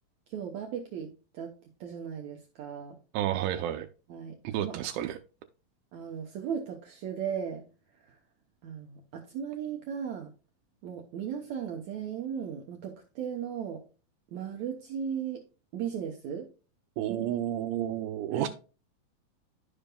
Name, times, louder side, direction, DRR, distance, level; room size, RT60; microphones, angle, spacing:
voice 1, 0.3-1.5 1.8-3.0 4.1-4.8 5.9-7.6 8.0-8.2 8.6-10.3 10.8-13.8 14.3-15.4 15.7-16.5 17.1-17.3 18.3-18.5, right 8 dB, 70° right, 1.8 m, -36 dB
voice 2, 3.1-3.9 4.4-5.2 17.0-18.5, right 11 dB, 85° right, 2.4 m, -31 dB
12.5 x 5.2 x 2.2 m
omnidirectional pair, 4.2 m